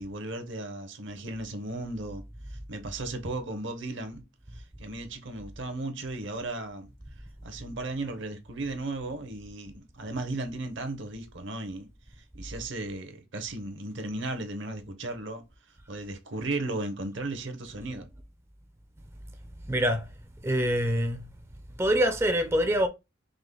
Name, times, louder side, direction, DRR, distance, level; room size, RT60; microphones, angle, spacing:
voice 1, 0.0-2.2 2.5-4.2 4.5-6.9 7.4-11.9 12.2-15.4 15.9-18.1, right 2 dB, 65° right, 0.8 m, -35 dB
voice 2, 19.7-20.1 20.4-21.3 21.8-22.9, equal, 15° right, 0.4 m, -25 dB
4.9 x 2.1 x 3.7 m
head